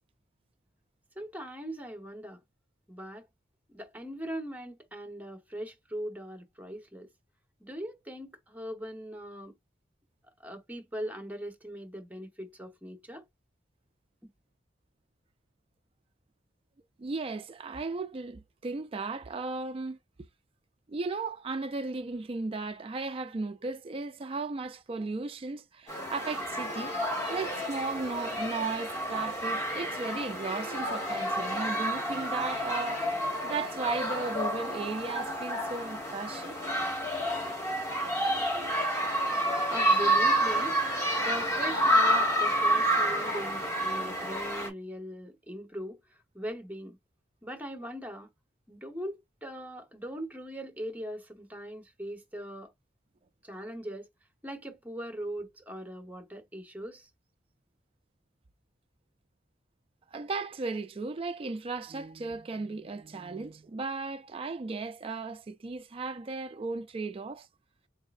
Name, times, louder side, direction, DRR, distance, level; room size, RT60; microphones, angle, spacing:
voice 1, 1.2-2.4 2.9-3.3 3.7-7.1 7.6-9.5 10.4-13.2 39.7-40.8 41.2-46.0 46.3-47.0 47.4-48.3 48.7-52.7 53.4-54.1 54.4-57.1, equal, 10° right, 1.0 m, -40 dB
voice 2, 17.0-20.0 20.9-26.9 27.3-33.1 33.4-36.6 60.1-67.5, right 3 dB, 30° right, 0.4 m, -35 dB
sound 1, 25.9-44.7, right 1 dB, 15° left, 1.7 m, -29 dB
3.9 x 3.7 x 2.5 m
head